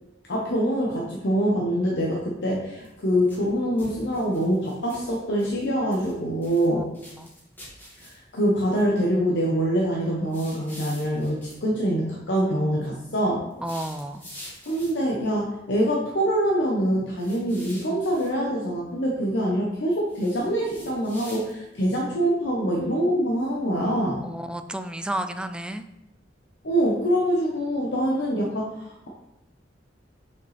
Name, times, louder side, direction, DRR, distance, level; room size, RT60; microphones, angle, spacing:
voice 1, 0.3-6.9 8.0-13.4 14.7-24.2 26.6-29.1, equal, 70° left, -3 dB, 1.0 m, -25 dB
sound 1, 2.8-3.5 3.8-5.7 5.9-6.7 6.9-8.4 10.3-11.6 13.5-15.1 17.2-18.3 20.1-21.7, equal, 10° left, 1.8 m, -45 dB
voice 2, 13.6-14.2 24.2-25.8, right 1 dB, 5° right, 9 dB, 0.3 m, -32 dB
6.6 x 5.3 x 3.3 m, 0.89 s
head